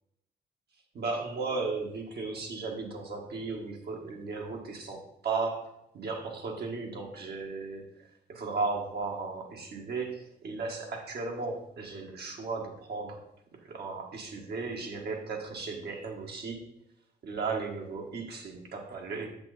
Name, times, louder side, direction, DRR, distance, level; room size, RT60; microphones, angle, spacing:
voice 1, 0.9-7.8 8.3-13.2 13.6-16.6 17.2-19.3, right 4 dB, 65° right, 1 dB, 1.8 m, -35 dB
7.8 x 5.9 x 4.1 m, 0.80 s
cardioid pair, 75°, 18 cm